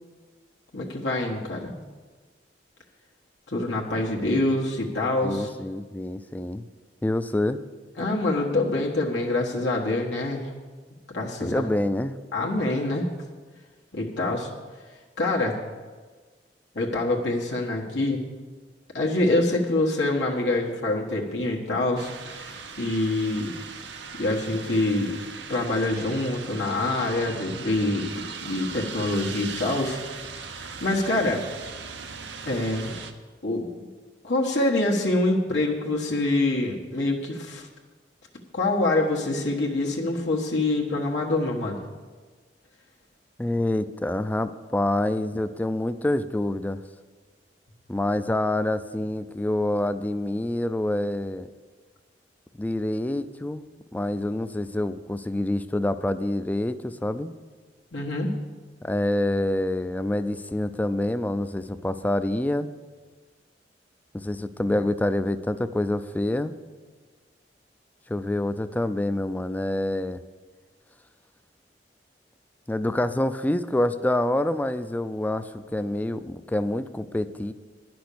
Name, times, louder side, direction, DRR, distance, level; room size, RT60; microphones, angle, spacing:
voice 1, 0.7-1.7 3.5-5.5 8.0-10.5 11.1-11.7 12.3-13.1 13.9-14.5 15.2-15.5 16.7-18.2 18.9-23.5 24.1-25.1 25.5-30.0 30.8-31.4 32.4-32.9 33.4-33.7 34.2-37.7 38.5-41.9 57.9-58.3, left 2 dB, 80° left, -2 dB, 1.3 m, -25 dB
voice 2, 5.2-6.7 7.0-7.6 11.4-12.1 43.4-46.8 47.9-51.5 52.6-53.7 53.9-57.3 58.8-62.7 64.1-66.5 68.1-70.2 72.7-77.5, left 1 dB, 10° left, 12 dB, 0.4 m, -27 dB
sound 1, 22.0-33.1, right 5 dB, 90° right, 0.8 m, -39 dB
10.5 x 6.1 x 8.4 m, 1.4 s
head